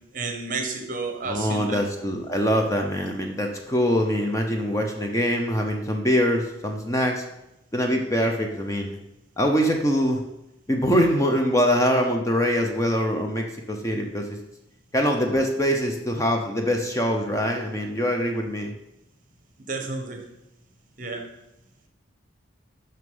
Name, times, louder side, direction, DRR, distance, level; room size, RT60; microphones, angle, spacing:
voice 1, 0.1-1.9 19.6-20.2 21.0-21.2, right 3 dB, 40° right, 5 dB, 1.1 m, -31 dB
voice 2, 1.2-7.2 7.7-9.0 9.4-10.2 10.7-14.4 14.9-18.7, equal, 15° left, 3 dB, 0.7 m, -23 dB
6.4 x 5.9 x 5.4 m, 0.89 s
head